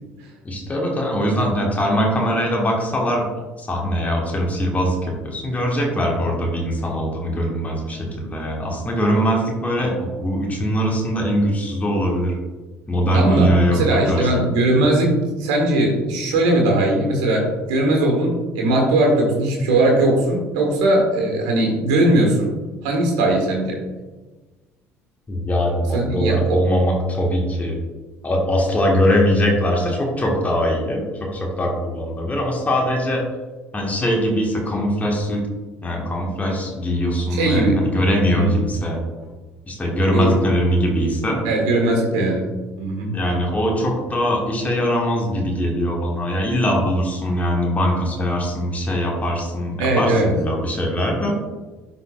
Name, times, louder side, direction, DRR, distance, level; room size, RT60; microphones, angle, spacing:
voice 1, 0.4-3.3 3.6-12.4 12.9-14.3 25.3-27.8 28.2-33.2 33.7-35.5 35.8-39.0 39.7-41.4 43.1-51.4, equal, 20° left, -1 dB, 1.6 m, -21 dB
voice 2, 13.1-22.5 22.8-23.8 25.9-26.6 37.4-37.9 38.3-38.6 40.1-40.4 41.4-42.5 42.8-43.2 49.8-50.3, right 1 dB, 60° right, 0 dB, 1.5 m, -19 dB
11.0 x 4.1 x 2.4 m, 1.2 s
figure-of-eight pair, 55°, 7 cm